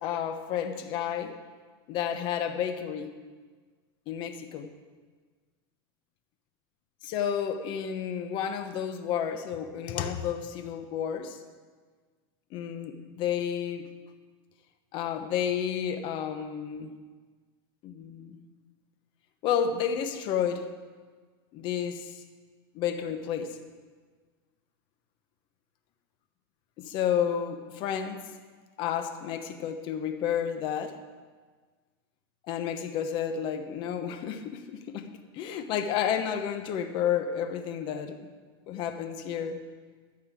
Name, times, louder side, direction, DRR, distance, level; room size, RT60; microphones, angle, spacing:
voice 1, 0.0-1.3 1.9-3.1 4.1-4.7 7.0-11.4 12.5-13.9 14.9-16.9 17.8-18.4 19.4-20.7 21.5-22.1 22.7-23.6 26.8-28.2 28.8-31.0 32.5-38.2 38.7-39.7, left 8 dB, 40° left, 8 dB, 1.1 m, -31 dB
14.0 x 5.5 x 8.3 m, 1.5 s
supercardioid pair, 150°, 13 cm